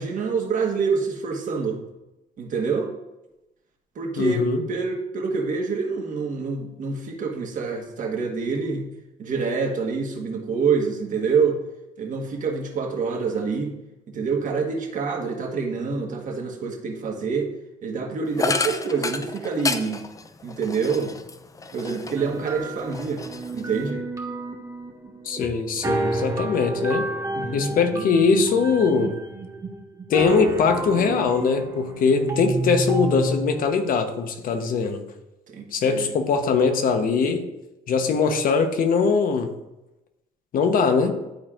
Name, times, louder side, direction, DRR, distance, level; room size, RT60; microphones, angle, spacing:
voice 1, 0.0-1.8 2.4-2.9 3.9-8.9 9.2-11.6 12.0-13.7 14.1-17.5 17.8-20.0 20.4-21.1 21.7-23.2 23.5-24.0 25.9-26.4 27.3-28.0 35.5-36.1, right 5 dB, 50° right, 2 dB, 1.4 m, -26 dB
voice 2, 4.2-4.6 25.2-27.1 27.5-29.2 30.1-35.0 35.7-37.5 37.9-39.5 40.5-41.2, left 5 dB, 55° left, 7 dB, 1.0 m, -21 dB
sound 1, 18.4-22.4 22.7-23.9, left 3 dB, 20° left, 0.4 m, -30 dB
sound 2, 22.2-33.7, right 2 dB, 20° right, 1.6 m, -30 dB
11.5 x 4.2 x 2.5 m, 0.97 s
cardioid pair, 110°, 17 cm